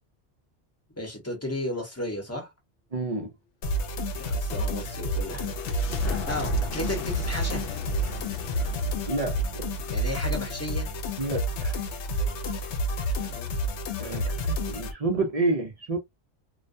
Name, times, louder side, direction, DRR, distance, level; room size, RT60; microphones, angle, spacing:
voice 1, 1.0-2.5 4.2-5.5 5.9-7.6 9.9-10.9 13.1-13.6, left 1 dB, 15° left, 0.8 m, -34 dB
voice 2, 2.9-3.3 9.1-9.6 11.2-11.8 12.2-12.4 14.0-16.0, right 2 dB, 45° right, 0.5 m, -29 dB
sound 1, 3.6-14.9, equal, 90° left, 0.9 m, -30 dB
sound 2, 4.6-11.0, left 2 dB, 60° left, 0.7 m, -37 dB
2.4 x 2.2 x 2.5 m
omnidirectional pair, 1.1 m